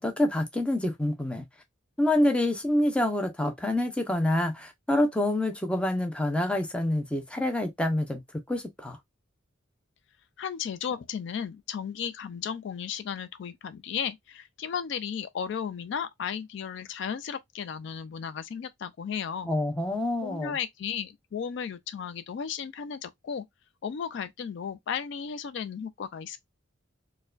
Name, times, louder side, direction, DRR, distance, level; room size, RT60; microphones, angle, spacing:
voice 1, 0.0-1.4 2.0-9.0 19.5-20.6, left 1 dB, 5° left, 0.5 m, -27 dB
voice 2, 10.4-19.5 20.2-23.5 23.8-26.4, left 7 dB, 60° left, 0.3 m, -34 dB
4.3 x 2.2 x 2.4 m
head